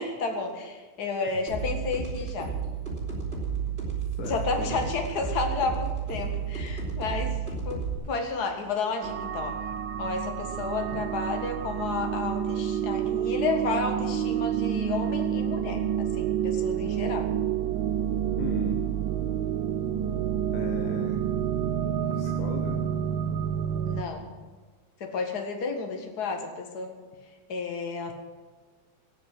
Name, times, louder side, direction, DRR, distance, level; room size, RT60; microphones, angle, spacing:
voice 1, 0.0-2.5 4.2-9.6 10.0-17.3 23.9-24.3 25.0-27.0 27.5-28.1, left 4 dB, 50° left, 3 dB, 2.3 m, -32 dB
sound 1, 1.5-7.9, right 6 dB, 30° right, 4.2 m, -32 dB
voice 2, 4.2-4.9 18.4-18.8 20.5-21.3 22.1-22.8, left 4 dB, 70° left, 2 dB, 2.1 m, -37 dB
sound 2, 9.0-24.0, right 9 dB, 70° right, 1.5 m, -28 dB
18.5 x 7.3 x 9.7 m, 1.4 s
omnidirectional pair, 2.2 m